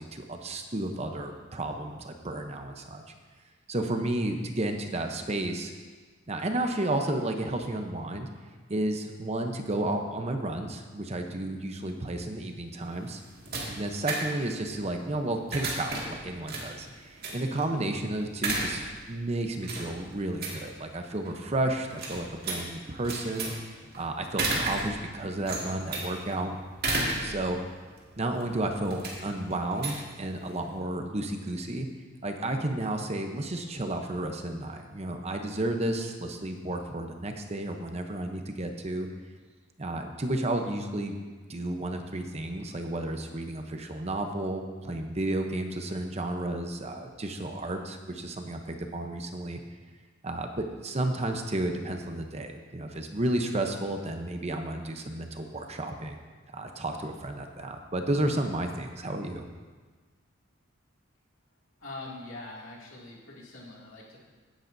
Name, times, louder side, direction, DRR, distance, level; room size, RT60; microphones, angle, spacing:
voice 1, 0.0-3.0 3.7-5.7 6.3-8.3 8.7-13.2 13.7-23.5 24.0-26.6 27.2-27.6 28.2-31.9 32.2-39.1 39.8-41.2 41.5-49.6 50.2-56.2 56.5-59.5, right 1 dB, 30° right, 4 dB, 0.8 m, -32 dB
sound 1, 12.8-30.8, right 2 dB, 50° right, 2.2 m, -35 dB
voice 2, 61.8-64.2, left 2 dB, 75° left, -4 dB, 2.6 m, -43 dB
16.0 x 10.5 x 2.7 m, 1.4 s
head